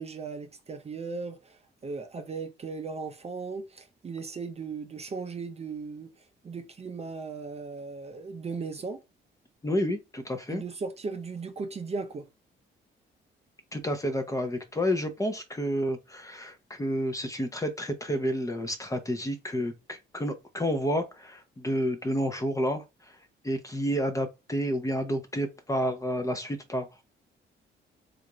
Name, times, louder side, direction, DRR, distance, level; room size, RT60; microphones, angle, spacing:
voice 1, 0.0-6.1 6.4-9.0 10.5-12.3, right 4 dB, 30° right, 0.6 m, -37 dB
voice 2, 9.6-10.6 13.7-22.8 23.4-27.0, equal, 15° left, 0.7 m, -30 dB
3.4 x 2.5 x 2.9 m
cardioid pair, 90°, 20 cm